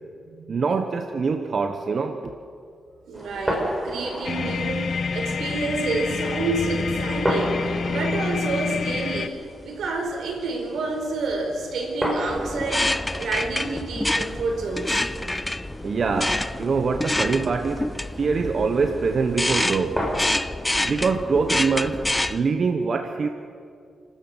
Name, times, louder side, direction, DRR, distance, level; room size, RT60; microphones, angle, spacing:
voice 1, 0.4-2.2 15.8-17.9 18.2-20.0 20.8-23.3, right 4 dB, 45° right, 6 dB, 1.1 m, -24 dB
sound 1, 3.1-20.1, equal, 10° right, 4.9 m, -34 dB
voice 2, 3.1-15.0, right 3 dB, 75° right, 3 dB, 4.6 m, -29 dB
sound 2, 4.2-9.3, left 5 dB, 55° left, 1.0 m, -27 dB
sound 3, 12.3-22.4, left 1 dB, 10° left, 0.6 m, -27 dB
29.5 x 13.0 x 8.1 m, 2.4 s
wide cardioid pair, 130°, 0 cm